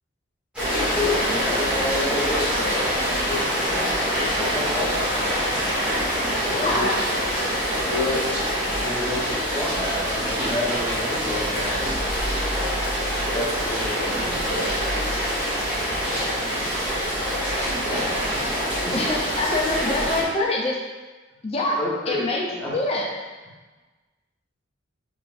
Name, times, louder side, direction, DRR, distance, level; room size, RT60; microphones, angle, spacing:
Rain, 0.5-20.2, equal, 5° right, 1.3 m, -25 dB
voice 1, 0.6-3.4 4.0-5.6 6.5-6.8 7.2-7.3 7.9-8.2 8.8-11.9 13.3-14.6 17.8-18.5 18.8-18.9 21.8-22.8, left 2 dB, 10° left, -8 dB, 0.9 m, -30 dB
voice 2, 6.5-6.9 18.9-20.8 21.4-21.8 22.1-23.1, left 2 dB, 30° left, -2 dB, 0.5 m, -25 dB
3.8 x 3.4 x 2.5 m, 1.3 s
head